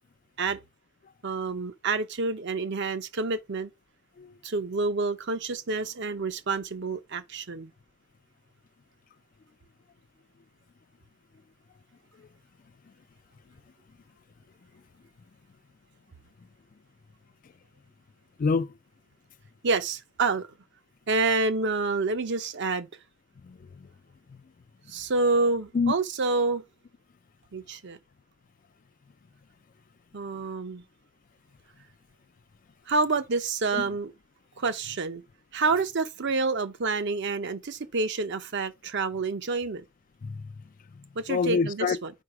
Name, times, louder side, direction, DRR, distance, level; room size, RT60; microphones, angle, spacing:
voice 1, 1.2-3.7 4.4-7.7 19.6-20.5 21.1-22.9 24.9-26.6 27.5-28.0 30.1-30.8 32.9-34.1 34.6-35.2 35.5-39.8 41.2-42.1, right 3 dB, 55° right, 0.7 m, -28 dB
voice 2, 18.4-18.7 23.4-23.9 24.3-24.4 25.7-25.9 33.7-33.9 40.2-42.0, left 4 dB, 40° left, 0.3 m, -29 dB
4.8 x 4.6 x 4.7 m
head